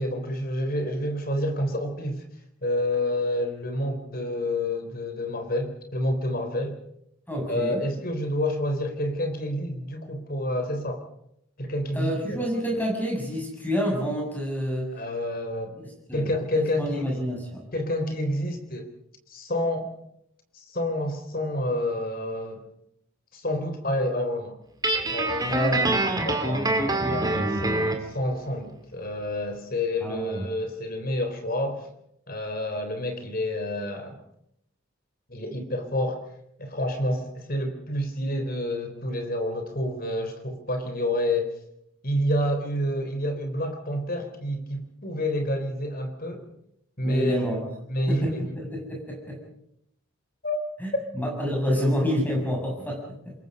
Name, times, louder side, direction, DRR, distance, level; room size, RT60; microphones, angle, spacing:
voice 1, 0.0-2.2 2.6-6.8 7.5-11.0 11.6-12.5 14.9-15.8 16.1-17.2 17.7-18.9 19.3-19.9 20.5-22.7 23.3-24.6 25.1-25.8 26.3-31.9 32.3-34.2 35.3-36.2 36.6-41.6 42.0-46.4 47.0-47.4 47.9-48.4 50.4-50.6 50.9-51.0, left 1 dB, 40° left, 6 dB, 3.7 m, -28 dB
voice 2, 7.3-7.8 11.9-14.9 15.8-17.6 25.5-26.0 30.0-30.4 47.0-47.7 48.1-49.4 50.8-53.3, equal, 10° left, -1 dB, 7.2 m, -28 dB
Guitar, 24.8-28.1, right 2 dB, 20° right, 2.4 m, -25 dB
27.0 x 22.0 x 5.4 m, 0.76 s
head